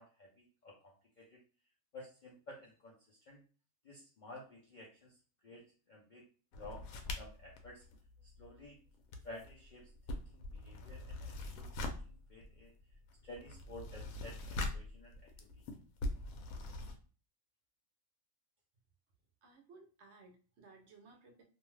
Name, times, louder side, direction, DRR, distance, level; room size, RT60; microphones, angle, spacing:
voice 1, 0.0-1.4 1.9-3.4 3.8-6.3 6.6-6.8 7.2-7.8 8.2-8.8 9.2-12.7 13.2-15.7, left 1 dB, 60° left, -2 dB, 0.5 m, -53 dB
sound 1, 6.5-8.7 9.0-17.0, left 2 dB, 85° left, 1.0 m, -43 dB
voice 2, 19.4-21.4, right 3 dB, 60° right, 2 dB, 0.8 m, -59 dB
2.7 x 2.2 x 3.1 m, 0.38 s
omnidirectional pair, 1.4 m